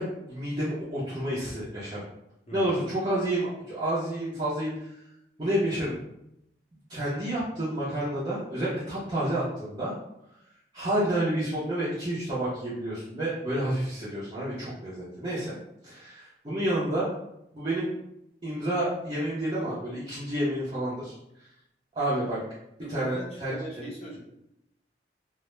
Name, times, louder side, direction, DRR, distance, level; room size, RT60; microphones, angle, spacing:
voice 1, 0.0-2.0 2.5-4.7 5.4-6.0 6.9-9.9 10.7-15.6 15.8-17.1 17.5-17.9 18.4-21.1 21.9-22.4 22.9-23.5, right 1 dB, 25° right, -9 dB, 0.5 m, -29 dB
voice 2, 22.8-24.2, equal, 35° left, -4 dB, 0.6 m, -41 dB
2.1 x 2.0 x 2.9 m, 0.82 s
head